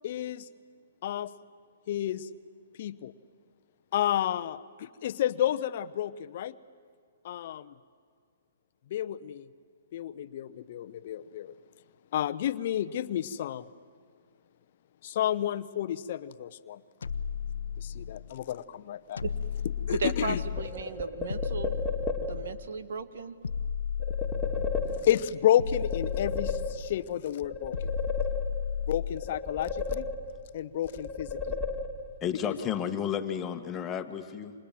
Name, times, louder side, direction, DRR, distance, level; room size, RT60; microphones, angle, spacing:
voice 1, 0.0-0.5 1.0-1.3 1.9-2.3 2.8-3.1 3.9-6.5 7.2-7.7 8.9-9.5 9.9-11.5 12.1-13.7 15.0-16.8 17.8-19.2 19.9-20.4 25.0-27.9 28.9-30.1 30.5-31.6 32.5-32.6, left 11 dB, 50° left, 13 dB, 0.9 m, -31 dB
sound 1, 17.0-18.3 19.2-20.8 21.3-22.7 23.4-25.1 25.6-27.0 27.7-29.3, left 7 dB, 80° left, 1.0 m, -34 dB
voice 2, 19.2-21.8 22.3-23.4, right 5 dB, 65° right, 11 dB, 1.9 m, -36 dB
sound 2, 20.6-22.5 24.0-25.4 25.7-27.1 27.4-28.8 29.1-30.5 30.8-32.2, left 4 dB, ahead, 3.1 m, -34 dB
voice 3, 32.2-34.5, left 8 dB, 20° left, 7 dB, 1.8 m, -32 dB
30.0 x 26.0 x 7.7 m, 2.1 s
hypercardioid pair, 135°, 0 cm